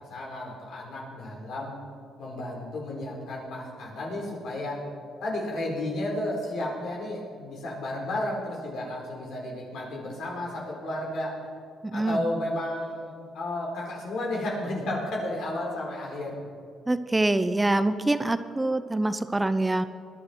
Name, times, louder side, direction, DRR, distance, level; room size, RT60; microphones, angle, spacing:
voice 1, 0.1-1.7 2.2-4.8 5.2-11.3 11.9-16.4, left 1 dB, 75° left, -3 dB, 4.4 m, -32 dB
voice 2, 11.8-12.2 16.9-19.9, right 2 dB, 15° right, 12 dB, 0.7 m, -25 dB
20.5 x 11.0 x 4.5 m, 2.3 s
cardioid pair, 90°, 0 cm